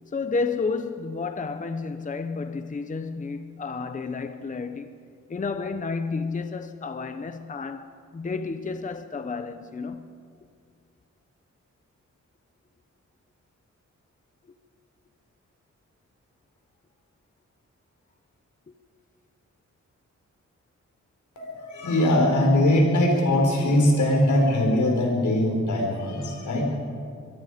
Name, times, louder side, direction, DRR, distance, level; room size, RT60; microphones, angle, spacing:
voice 1, 0.1-4.9 5.3-10.2, left 4 dB, 25° left, 0.7 m, -31 dB
voice 2, 21.3-26.6, left 1 dB, 80° left, 5.0 m, -21 dB
24.0 x 23.0 x 5.1 m
wide cardioid pair, 145°, 29 cm